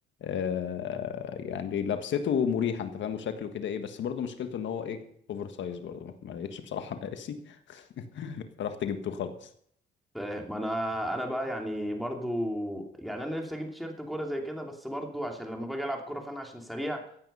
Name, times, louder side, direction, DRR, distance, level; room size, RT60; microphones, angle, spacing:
voice 1, 0.2-5.0 5.3-9.5, left 8 dB, 70° left, 8 dB, 1.6 m, -33 dB
voice 2, 10.1-17.0, equal, ahead, 1 dB, 2.8 m, -34 dB
15.0 x 9.1 x 5.5 m, 0.64 s
cardioid pair, 90°, 20 cm